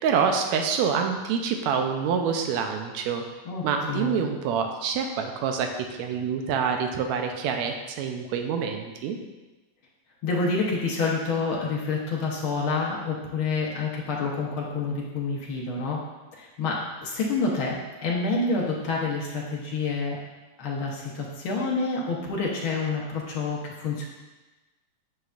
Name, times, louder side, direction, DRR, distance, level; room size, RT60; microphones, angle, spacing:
voice 1, 0.0-3.2 3.6-5.7 6.0-9.2, right 6 dB, 75° right, 4 dB, 1.8 m, -26 dB
voice 2, 3.4-4.1 10.2-16.0 16.3-20.2 20.6-24.0, left 3 dB, 65° left, -3 dB, 1.3 m, -28 dB
9.2 x 6.3 x 2.5 m, 1.2 s
omnidirectional pair, 3.5 m